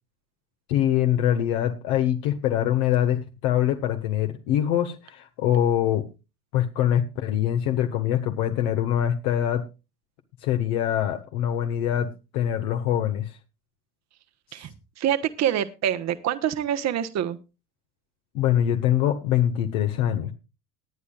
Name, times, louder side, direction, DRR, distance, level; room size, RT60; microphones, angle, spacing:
voice 1, 0.7-6.0 6.5-9.6 10.4-12.1 12.3-13.4 18.3-20.3, left 11 dB, 60° left, 5 dB, 1.6 m, -24 dB
voice 2, 14.5-17.4, right 10 dB, 35° right, 10 dB, 1.2 m, -26 dB
19.5 x 9.9 x 2.4 m, 0.29 s
hypercardioid pair, 75°, 45 cm